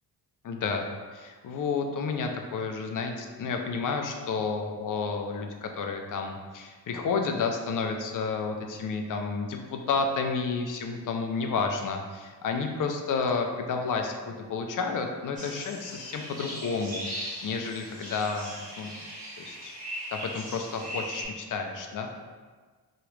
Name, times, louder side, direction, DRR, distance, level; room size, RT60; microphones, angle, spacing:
voice 1, 0.4-0.8 1.1-18.9 19.4-19.7 20.1-22.1, left 4 dB, 50° left, 4 dB, 0.5 m, -31 dB
sound 1, 15.4-21.2, equal, 20° right, 1.4 m, -39 dB
3.0 x 2.4 x 3.1 m, 1.4 s
cardioid pair, 95°, 41 cm